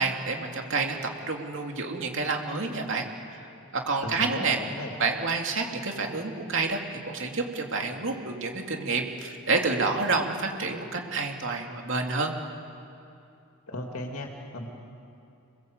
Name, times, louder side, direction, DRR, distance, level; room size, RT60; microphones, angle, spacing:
voice 1, 0.0-3.1 3.9-4.6 5.0-12.3, right 3 dB, 60° right, 2 dB, 2.9 m, -29 dB
voice 2, 4.0-5.0 13.7-14.7, left 1 dB, 80° left, 1 dB, 2.5 m, -36 dB
27.5 x 21.0 x 8.1 m, 2.6 s
head